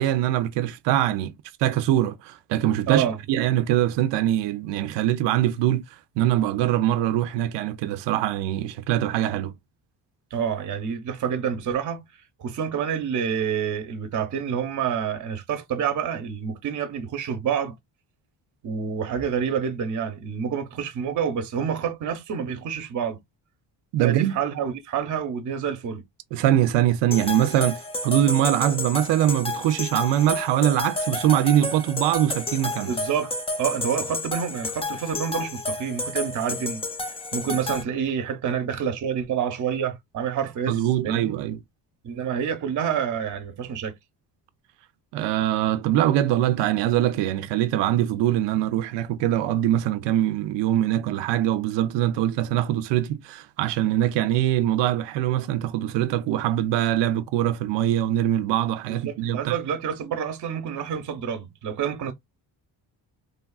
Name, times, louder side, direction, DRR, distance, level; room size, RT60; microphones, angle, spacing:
voice 1, 0.0-5.8 6.2-9.5 23.9-24.4 26.3-32.9 40.7-41.6 45.1-59.6, right 12 dB, 75° right, 0.5 m, -23 dB
voice 2, 2.9-3.2 10.3-12.1 12.4-17.8 18.6-23.2 24.0-26.0 32.9-33.3 33.6-36.8 37.3-41.4 42.0-43.9 58.9-62.1, right 7 dB, 45° right, 0.7 m, -28 dB
sound 1, 27.1-37.8, left 2 dB, 15° left, 0.4 m, -31 dB
3.3 x 2.3 x 2.2 m
cardioid pair, 145°, 43 cm